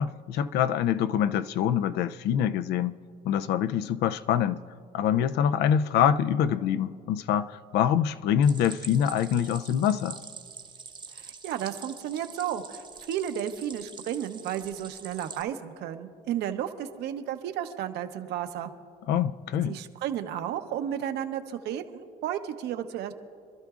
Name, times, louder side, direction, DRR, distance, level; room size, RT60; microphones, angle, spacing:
voice 1, 0.0-3.0 3.3-4.6 4.9-10.2 19.1-19.8, left 9 dB, 80° left, 0.5 m, -25 dB
Stream, 8.4-15.4, right 5 dB, 25° right, 0.8 m, -45 dB
voice 2, 11.1-18.7 19.7-23.1, right 10 dB, 80° right, 0.9 m, -33 dB
26.5 x 12.5 x 2.4 m
cardioid pair, 110°, 17 cm